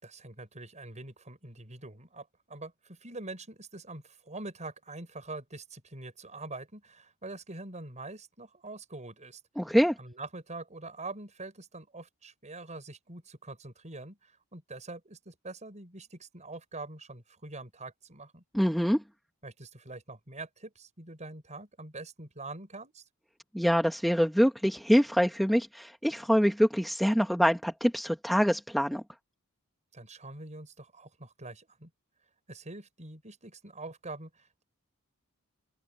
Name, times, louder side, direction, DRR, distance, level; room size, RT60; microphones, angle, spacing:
voice 1, 0.0-9.4 10.0-18.4 19.4-23.0 29.9-31.9 32.5-34.6, right 2 dB, 30° right, 6.9 m, -44 dB
voice 2, 9.6-9.9 18.5-19.0 23.5-29.0, equal, ahead, 1.6 m, -25 dB
open air
head